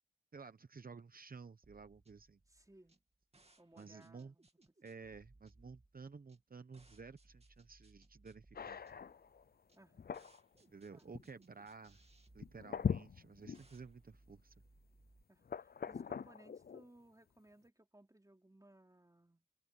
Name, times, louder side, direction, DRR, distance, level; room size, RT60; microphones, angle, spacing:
voice 1, 0.3-2.4 3.8-4.3 4.8-8.8 10.6-12.0 12.3-14.5, right 4 dB, 70° right, 0.8 m, -53 dB
sound 1, 1.6-15.2, right 2 dB, 40° right, 2.5 m, -67 dB
voice 2, 2.5-3.0 3.6-4.5 9.8-10.2 10.9-11.1 15.3-19.5, right 1 dB, 20° right, 4.1 m, -63 dB
sound 2, 8.6-9.5 9.9-10.4 11.1-11.2 12.4-13.6 14.3-14.4 15.5-16.8, left 6 dB, 75° left, 0.5 m, -41 dB
wide cardioid pair, 55°, 16 cm